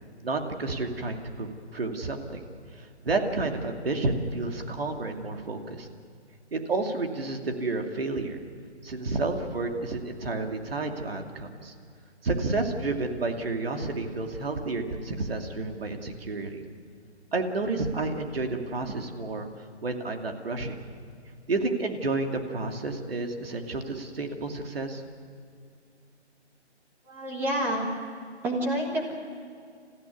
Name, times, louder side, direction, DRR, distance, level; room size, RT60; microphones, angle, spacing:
voice 1, 0.2-2.4 2.8-5.9 6.5-8.4 8.8-11.7 12.2-16.6 17.3-19.5 19.8-20.8 21.5-25.0, right 3 dB, 55° right, 4 dB, 2.6 m, -30 dB
voice 2, 27.1-27.9 28.4-29.1, right 1 dB, 5° right, 0 dB, 1.5 m, -28 dB
29.0 x 15.5 x 9.5 m, 2.3 s
hypercardioid pair, 165°, 35 cm